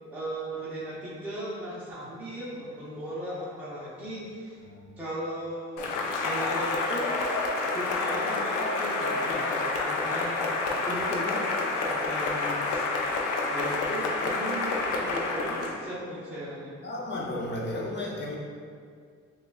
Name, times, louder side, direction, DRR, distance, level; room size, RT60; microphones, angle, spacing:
voice 1, 0.1-4.6 5.0-5.9 6.2-7.2 7.7-10.5 10.9-12.9 13.4-16.8, right 1 dB, 5° right, -9 dB, 0.6 m, -37 dB
Cheering / Applause, 5.8-15.8, left 3 dB, 90° left, 0.5 m, -28 dB
voice 2, 16.8-18.4, left 1 dB, 35° left, -2 dB, 0.6 m, -34 dB
6.2 x 2.3 x 2.3 m, 2.2 s
cardioid pair, 140°, 30 cm